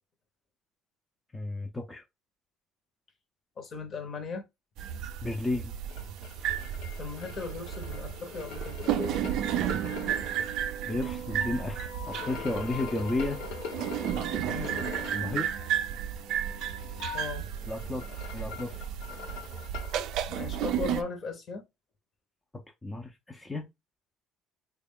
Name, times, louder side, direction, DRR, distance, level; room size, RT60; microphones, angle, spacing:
voice 1, 1.3-2.0 5.2-5.7 10.9-13.4 15.1-15.5 17.7-18.1 18.3-18.8 22.8-23.6, left 2 dB, 10° left, 0.5 m, -33 dB
voice 2, 3.6-4.4 7.0-9.2 14.5-14.8 17.1-17.5 20.3-21.6, left 4 dB, 40° left, 0.8 m, -37 dB
sound 1, 4.8-21.0, right 10 dB, 70° right, 0.4 m, -33 dB
sound 2, 5.9-10.4 12.1-15.3 17.4-20.0, left 5 dB, 85° left, 1.0 m, -42 dB
sound 3, 10.3-15.9 16.2-17.2, left 10 dB, 65° left, 0.4 m, -46 dB
3.4 x 2.3 x 3.5 m
cardioid pair, 120°, 0 cm